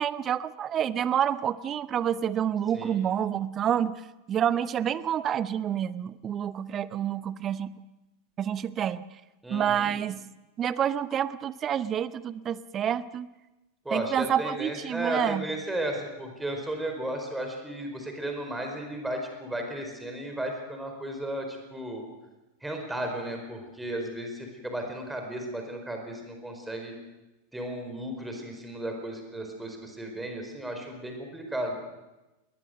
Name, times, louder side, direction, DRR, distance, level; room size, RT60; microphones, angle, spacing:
voice 1, 0.0-3.9 4.3-7.7 8.4-9.0 9.5-10.2 10.6-13.3 13.9-15.4, right 9 dB, 25° right, 17 dB, 0.7 m, -28 dB
voice 2, 9.4-9.9 13.8-22.0 22.6-26.9 27.5-31.8, right 1 dB, 5° right, 3 dB, 4.4 m, -34 dB
20.5 x 20.0 x 6.5 m, 1.0 s
figure-of-eight pair, 90°, 0 cm